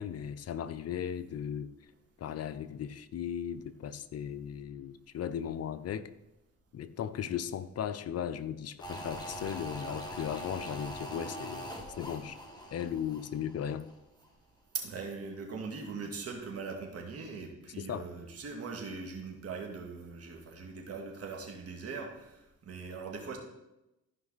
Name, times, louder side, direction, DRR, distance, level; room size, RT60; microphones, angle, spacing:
voice 1, 0.0-1.7 2.2-6.1 6.7-12.4 12.7-13.8 17.8-18.1, left 9 dB, 55° left, 13 dB, 0.6 m, -37 dB
sound 1, 8.8-14.0 14.2-14.3, equal, 15° left, 1.9 m, -43 dB
voice 2, 14.7-23.4, right 4 dB, 50° right, 1 dB, 2.2 m, -41 dB
14.0 x 5.3 x 4.0 m, 0.95 s
cardioid pair, 90°, 30 cm